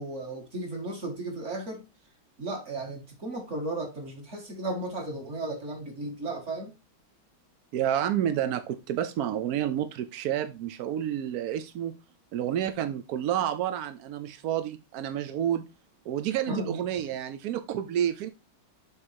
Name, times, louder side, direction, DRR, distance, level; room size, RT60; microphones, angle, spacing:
voice 1, 0.0-1.8 2.4-6.7 16.5-16.8, right 2 dB, 35° right, 1.8 m, -35 dB
voice 2, 7.7-12.0 12.3-15.6 16.1-18.3, right 10 dB, 80° right, 0.8 m, -29 dB
7.1 x 3.5 x 4.4 m
omnidirectional pair, 2.2 m